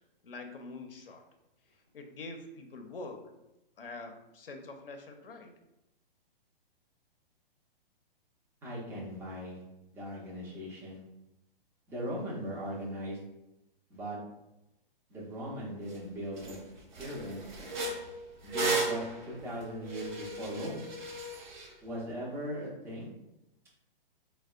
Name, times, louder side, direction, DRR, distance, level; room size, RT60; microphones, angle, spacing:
voice 1, 0.2-1.2 1.9-3.3 3.8-5.5, left 3 dB, 70° left, 5 dB, 0.6 m, -45 dB
voice 2, 8.6-9.6 9.9-11.0 11.9-13.2 13.9-14.2 15.1-16.6 17.0-17.4 18.4-20.8 21.8-23.1, equal, 10° right, -5 dB, 0.6 m, -39 dB
sound 1, 15.9-16.0 16.4-16.6 16.9-21.7, right 3 dB, 55° right, 0.9 m, -35 dB
4.1 x 2.1 x 2.3 m, 0.90 s
figure-of-eight pair, 120°, 29 cm